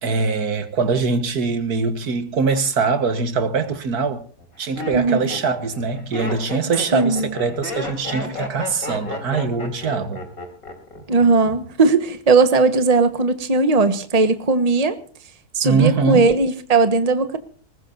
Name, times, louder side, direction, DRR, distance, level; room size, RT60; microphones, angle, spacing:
voice 1, 0.0-4.2 4.6-10.2 15.6-16.3, right 5 dB, 70° right, 1.9 m, -22 dB
Laughter, 3.3-3.8 4.4-11.0 11.3-11.8, left 3 dB, 60° left, 4.1 m, -32 dB
voice 2, 6.9-7.3 11.1-15.0 15.5-17.4, right 3 dB, 25° right, 1.3 m, -18 dB
21.0 x 19.5 x 2.7 m
omnidirectional pair, 1.7 m